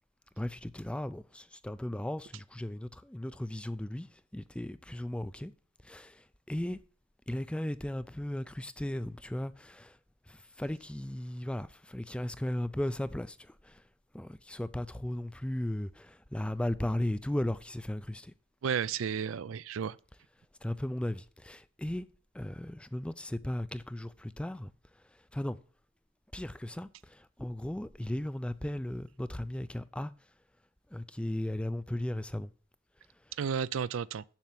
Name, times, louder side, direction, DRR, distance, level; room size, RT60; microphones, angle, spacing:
voice 1, 0.4-5.5 5.8-6.8 7.3-10.0 10.3-13.8 14.1-18.3 20.6-22.1 22.3-24.7 25.3-25.6 26.3-30.1 30.9-32.5, left 1 dB, 5° left, 0.4 m, -36 dB
voice 2, 18.6-20.0 33.4-34.2, right 7 dB, 65° right, 0.4 m, -32 dB
7.4 x 6.8 x 7.4 m
head